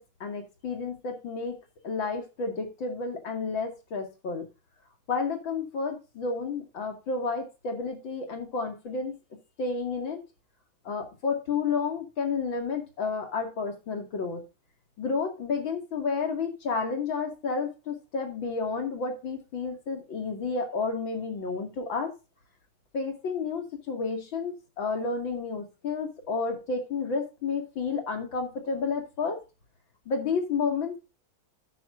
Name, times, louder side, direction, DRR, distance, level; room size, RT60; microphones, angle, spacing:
voice 1, 0.0-1.5 1.8-4.4 5.1-9.2 9.6-10.2 10.8-14.4 15.0-22.1 22.9-29.4 30.1-31.0, left 4 dB, 70° left, 3 dB, 3.2 m, -31 dB
12.0 x 9.3 x 2.7 m, 0.29 s
omnidirectional pair, 2.2 m